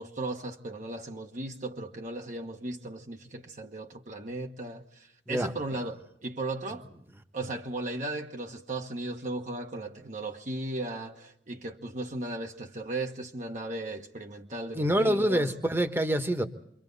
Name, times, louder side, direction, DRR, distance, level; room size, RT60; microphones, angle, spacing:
voice 1, 0.0-6.9 7.3-15.5, right 2 dB, 45° right, 1.2 m, -36 dB
voice 2, 14.7-16.4, right 1 dB, 15° right, 1.3 m, -26 dB
28.5 x 24.0 x 4.0 m
head